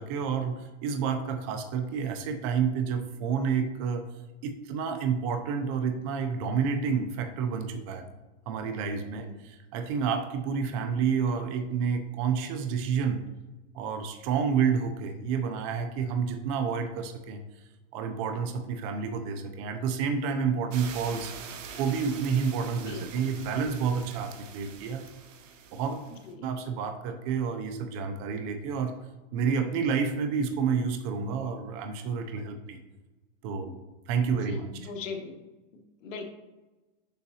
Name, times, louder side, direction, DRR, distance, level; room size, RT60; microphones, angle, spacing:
voice 1, 0.0-4.0 4.4-8.0 8.5-13.2 13.7-17.4 17.9-21.3 21.8-25.0 25.7-26.0 26.4-28.9 29.3-32.8 33.4-33.8 34.1-34.9, right 6 dB, 30° right, 6 dB, 0.5 m, -29 dB
sound 1, 20.7-26.3, right 6 dB, 85° right, 0.9 m, -44 dB
voice 2, 26.1-26.5 34.3-35.4 35.7-36.3, left 4 dB, 85° left, 3 dB, 1.3 m, -40 dB
6.9 x 5.7 x 2.8 m, 1.1 s
supercardioid pair, 155°, 38 cm